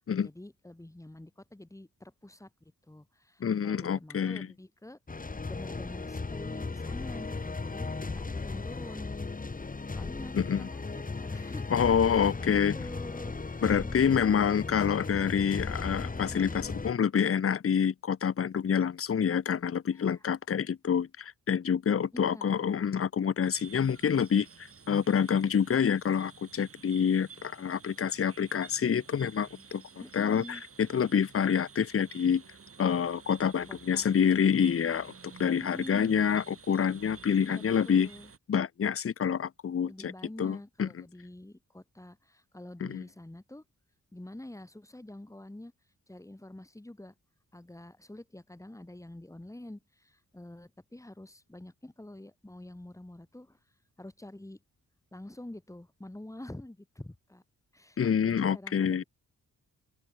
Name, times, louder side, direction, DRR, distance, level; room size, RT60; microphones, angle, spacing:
voice 1, 0.2-9.1 9.9-11.7 12.1-14.7 19.9-20.3 22.1-22.8 23.8-24.0 30.0-30.6 33.7-34.1 35.7-36.3 37.4-38.3 39.8-43.6 44.1-45.7 46.1-47.1 47.5-53.6 54.0-54.6 55.1-57.4 57.7-58.0 58.2-59.0, left 1 dB, 10° left, 3.6 m, -47 dB
voice 2, 3.4-4.5 10.3-10.7 11.7-12.8 13.6-29.8 30.1-32.4 32.8-38.1 38.5-40.1 40.4-40.9 42.8-43.0 58.0-59.0, left 7 dB, 45° left, 0.9 m, -27 dB
sound 1, 5.1-16.9, left 3 dB, 25° left, 2.0 m, -36 dB
sound 2, 23.4-38.4, right 5 dB, 40° right, 2.9 m, -52 dB
open air
wide cardioid pair, 115°, 33 cm